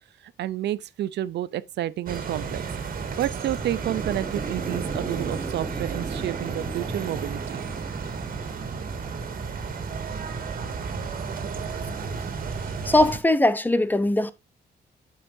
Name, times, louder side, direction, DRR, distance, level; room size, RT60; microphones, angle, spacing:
voice 1, 0.4-2.6 3.2-7.6, right 12 dB, 85° right, 0.6 m, -30 dB
sound 1, 2.1-13.2, right 5 dB, 55° right, 2.0 m, -32 dB
sound 2, 3.8-9.9, right 3 dB, 15° right, 1.3 m, -38 dB
voice 2, 12.8-14.3, left 1 dB, 10° left, 0.7 m, -20 dB
9.8 x 7.5 x 2.7 m
cardioid pair, 140°, 17 cm